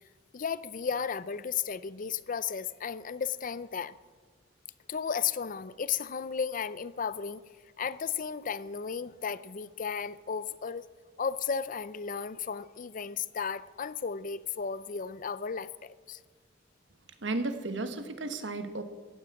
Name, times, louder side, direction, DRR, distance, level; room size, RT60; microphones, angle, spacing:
voice 1, 0.3-4.0 4.9-7.4 7.8-10.9 11.2-16.2, left 6 dB, 45° left, 16 dB, 0.5 m, -34 dB
voice 2, 17.2-18.8, right 2 dB, 85° right, 8 dB, 1.4 m, -33 dB
14.5 x 9.5 x 8.5 m, 1.5 s
head